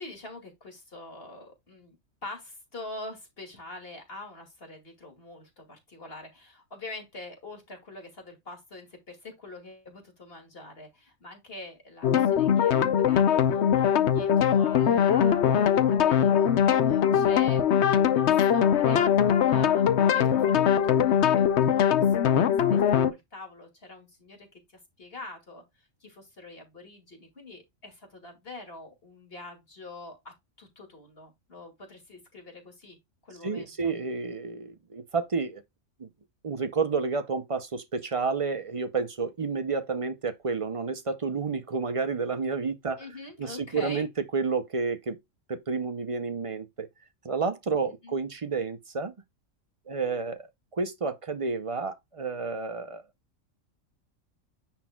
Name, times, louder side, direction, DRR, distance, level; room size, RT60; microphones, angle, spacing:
voice 1, 0.0-2.0 2.2-16.6 16.8-33.0 33.2-33.9 43.0-44.0 48.0-48.1, left 2 dB, 45° left, 2.5 m, -45 dB
sound 1, 12.0-23.1, left 9 dB, 60° left, 0.9 m, -22 dB
voice 2, 33.4-35.6 36.0-36.1 36.4-43.0 43.4-45.2 45.5-46.9 47.2-49.1 49.9-50.4 50.7-53.0, right 4 dB, 35° right, 0.5 m, -30 dB
9.7 x 4.4 x 2.3 m
omnidirectional pair, 1.4 m